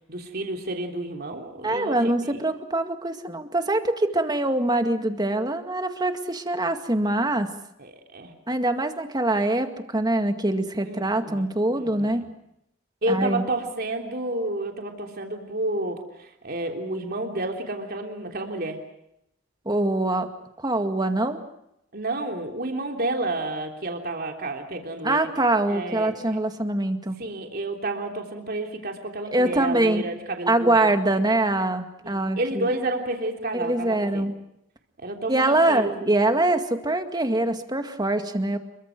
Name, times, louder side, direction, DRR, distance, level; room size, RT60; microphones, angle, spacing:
voice 1, 0.0-2.4 7.8-8.3 10.8-11.5 11.8-12.3 13.0-18.8 21.9-25.3 25.7-26.4 27.2-30.7 32.0-34.2 35.0-36.1, right 2 dB, 50° right, 3 dB, 3.3 m, -30 dB
voice 2, 1.6-7.5 8.5-12.3 13.1-13.4 19.7-20.3 20.6-21.4 25.0-27.2 29.3-30.1 30.5-32.7 33.5-34.3 35.3-38.6, right 2 dB, 20° right, 7 dB, 2.1 m, -24 dB
28.0 x 23.5 x 6.1 m, 0.80 s
head